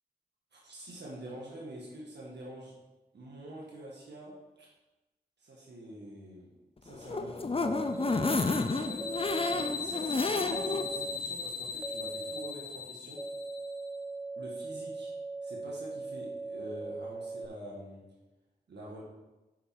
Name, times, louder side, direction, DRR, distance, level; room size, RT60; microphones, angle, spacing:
voice 1, 0.5-2.7 3.1-4.7 5.4-9.1 9.5-13.2 14.3-15.1 15.4-18.0 18.7-19.0, right 1 dB, 85° right, -4 dB, 1.5 m, -46 dB
sound 1, 6.9-10.9 11.3-11.4 11.7-11.8, left 3 dB, 35° left, 0.6 m, -31 dB
sound 2, 7.6-8.4 9.0-9.7 10.5-11.2 11.8-12.5 13.2-17.5, right 3 dB, 10° right, 0.3 m, -40 dB
sound 3, 7.9-13.9, left 5 dB, 60° left, 0.8 m, -39 dB
6.5 x 5.8 x 4.8 m, 1.1 s
cardioid pair, 45°, 17 cm